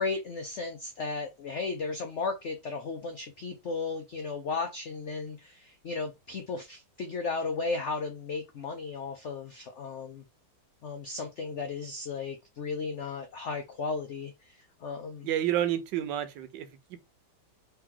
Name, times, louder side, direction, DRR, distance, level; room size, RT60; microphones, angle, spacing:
voice 1, 0.0-10.2 10.8-15.3, left 4 dB, 85° left, 0.6 m, -35 dB
voice 2, 15.2-17.0, right 11 dB, 75° right, 1.3 m, -30 dB
3.4 x 2.9 x 3.7 m
omnidirectional pair, 2.0 m